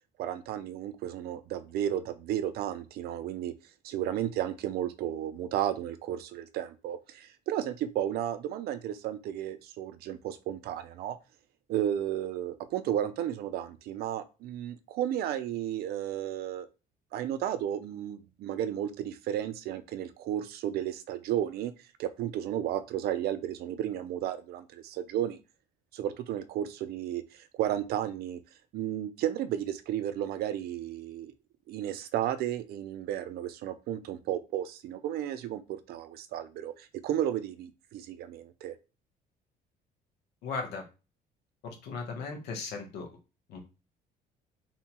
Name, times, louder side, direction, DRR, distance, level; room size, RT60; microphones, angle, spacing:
voice 1, 0.2-3.5 3.8-11.2 11.7-16.7 17.1-21.7 22.0-25.4 25.9-28.4 28.7-31.3 31.7-38.7, right 11 dB, 65° right, 11 dB, 0.4 m, -33 dB
voice 2, 40.4-40.8 41.6-43.1 43.5-43.6, left 4 dB, 90° left, 2 dB, 0.9 m, -37 dB
2.7 x 2.2 x 2.8 m, 0.31 s
cardioid pair, 110°, 17 cm